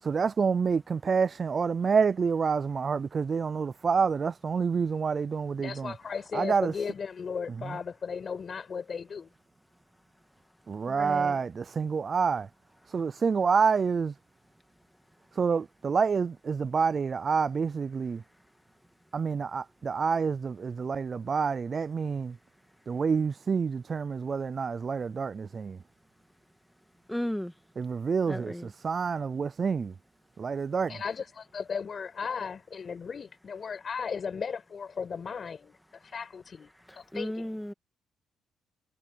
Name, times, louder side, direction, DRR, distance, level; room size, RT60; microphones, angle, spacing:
voice 1, 0.0-5.9 6.3-6.7 10.7-12.5 12.9-14.1 15.3-18.2 19.1-22.4 22.9-25.8 27.8-29.9 30.4-31.0, right 5 dB, 40° right, 0.5 m, -28 dB
voice 2, 5.6-9.3 30.9-37.5, left 6 dB, 40° left, 6.2 m, -36 dB
voice 3, 10.9-11.4 27.1-27.5 28.3-28.7 37.1-37.7, equal, 5° left, 1.9 m, -34 dB
cardioid pair, 110°, 0 cm